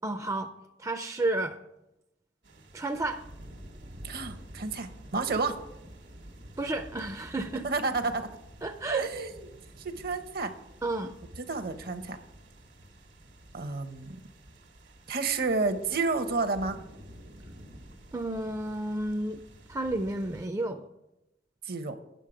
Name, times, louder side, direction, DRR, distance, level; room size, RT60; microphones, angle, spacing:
voice 1, 0.0-0.5 0.8-1.6 2.7-3.2 6.6-7.7 8.6-9.0 10.8-11.1 18.1-19.4 19.7-20.9, right 2 dB, 15° right, 5 dB, 0.4 m, -31 dB
sound 1, 2.4-20.5, right 1 dB, 70° right, 1.4 m, -50 dB
voice 2, 4.0-5.5 7.6-8.3 8.9-9.5 9.8-10.5 11.4-12.2 13.5-14.2 15.1-16.8 21.7-22.0, right 4 dB, 55° right, 9 dB, 0.8 m, -30 dB
9.1 x 6.4 x 5.0 m, 0.89 s
head